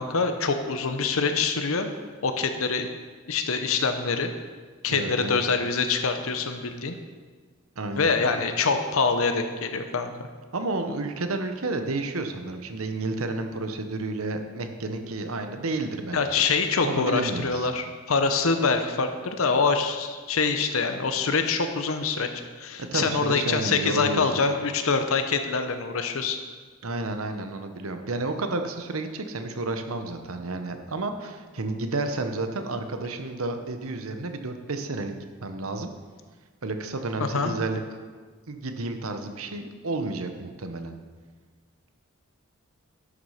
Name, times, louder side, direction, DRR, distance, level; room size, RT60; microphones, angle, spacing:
voice 1, 0.0-1.9 2.2-2.9 3.3-4.3 4.8-7.0 8.0-10.1 16.1-22.3 22.6-26.4 37.3-37.5, left 4 dB, 80° left, 7 dB, 0.8 m, -25 dB
voice 2, 4.9-5.4 7.8-8.1 10.5-16.2 16.8-17.7 22.8-24.3 26.8-35.1 35.4-35.9 36.6-37.8 38.5-40.9, right 2 dB, 90° right, 7 dB, 1.0 m, -31 dB
11.5 x 6.3 x 5.7 m, 1.5 s
head